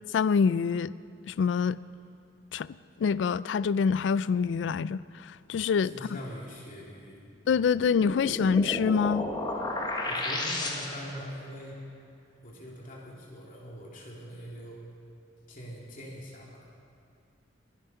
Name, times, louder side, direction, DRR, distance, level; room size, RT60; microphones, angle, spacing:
voice 1, 0.1-0.9 1.3-1.8 2.5-2.7 3.0-5.9 7.5-9.2, left 6 dB, 70° left, 18 dB, 0.3 m, -25 dB
voice 2, 5.8-7.2 10.1-11.8 12.4-14.8 15.5-16.7, equal, 45° left, -3 dB, 2.7 m, -43 dB
sound 1, 7.7-11.2, left 1 dB, 25° left, 1.4 m, -33 dB
21.5 x 9.3 x 5.6 m, 2.3 s
head